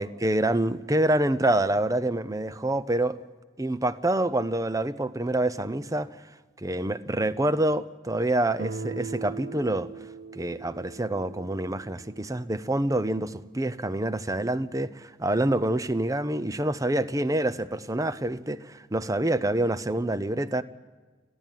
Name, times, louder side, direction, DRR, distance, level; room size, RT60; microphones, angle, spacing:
voice 1, 0.0-3.2 3.6-6.1 6.6-9.9 10.3-20.6, right 1 dB, 20° right, 0.7 m, -26 dB
Guitar, 8.6-13.4, right 4 dB, 50° right, 0.9 m, -40 dB
25.5 x 15.5 x 9.3 m
head